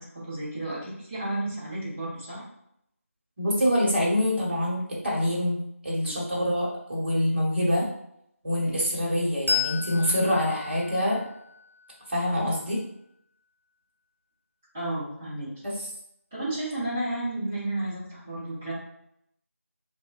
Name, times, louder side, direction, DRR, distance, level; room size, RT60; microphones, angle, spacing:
voice 1, 0.2-2.4 6.0-6.2 14.7-15.5 16.3-18.7, right 1 dB, 10° right, -10 dB, 0.4 m, -32 dB
voice 2, 3.4-5.6 5.8-7.9 8.4-11.2 12.1-12.8 15.6-15.9, left 1 dB, 45° right, -4 dB, 0.9 m, -25 dB
Bell, 9.5-12.5, left 6 dB, 55° left, 0.5 m, -33 dB
3.0 x 2.1 x 2.3 m, 0.74 s
figure-of-eight pair, 165°, 8 cm